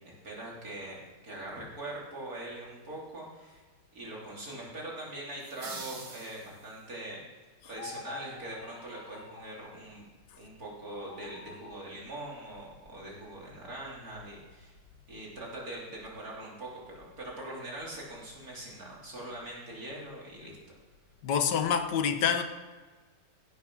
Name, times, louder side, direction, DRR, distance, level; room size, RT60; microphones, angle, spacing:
voice 1, 0.0-3.6 3.9-7.3 7.7-10.0 10.4-14.7 15.1-20.6, right 1 dB, 55° right, 3.7 m, -42 dB
sound 1, 5.4-7.0, right 3 dB, 75° right, 2.4 m, -45 dB
sound 2, 7.7-9.5 10.8-11.9, left 4 dB, 55° left, 1.4 m, -46 dB
voice 2, 21.2-22.4, left 7 dB, 80° left, 1.6 m, -26 dB
16.0 x 6.0 x 6.0 m
omnidirectional pair, 1.9 m